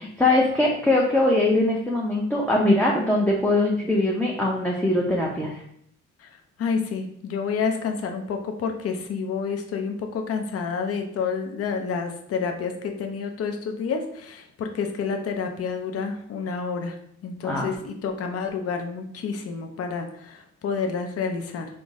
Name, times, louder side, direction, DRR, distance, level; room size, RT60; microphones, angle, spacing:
voice 1, 0.0-5.6 17.4-17.7, left 2 dB, 5° left, -4 dB, 0.5 m, -22 dB
voice 2, 6.6-17.0 17.2-21.7, left 5 dB, 50° left, 4 dB, 0.6 m, -29 dB
3.8 x 2.0 x 3.6 m, 0.70 s
cardioid pair, 90°, 30 cm